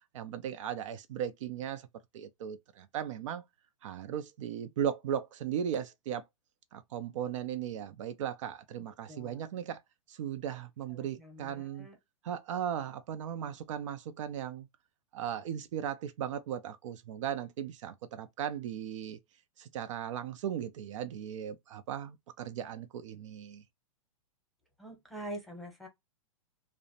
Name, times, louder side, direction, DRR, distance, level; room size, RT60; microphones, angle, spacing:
voice 1, 0.1-1.9 2.1-3.4 3.8-6.2 6.7-9.8 10.1-11.9 12.2-14.7 15.1-19.2 19.6-23.6, right 9 dB, 60° right, 0.4 m, -37 dB
voice 2, 9.1-9.4 10.9-12.0 24.8-25.9, right 1 dB, ahead, 0.8 m, -45 dB
2.5 x 2.0 x 2.6 m
hypercardioid pair, 125°, 18 cm